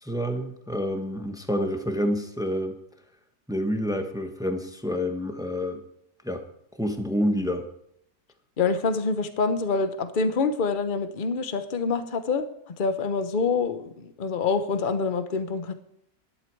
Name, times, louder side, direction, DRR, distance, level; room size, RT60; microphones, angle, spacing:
voice 1, 0.0-2.8 3.5-5.8 6.2-6.4 6.8-7.7, equal, 5° right, 6 dB, 0.9 m, -28 dB
voice 2, 8.6-12.5 12.8-15.7, left 4 dB, 35° left, 10 dB, 0.9 m, -26 dB
12.0 x 11.0 x 4.7 m, 0.73 s
omnidirectional pair, 1.9 m